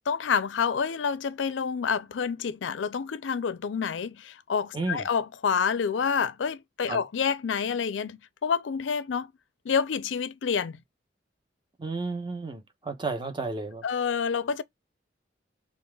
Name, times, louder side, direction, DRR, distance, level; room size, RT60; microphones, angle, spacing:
voice 1, 0.1-9.3 9.7-10.8 13.8-14.6, left 6 dB, 90° left, 0.5 m, -28 dB
voice 2, 4.7-5.1 6.9-7.0 11.8-13.8, right 3 dB, 25° right, 0.9 m, -32 dB
5.4 x 2.5 x 2.3 m
head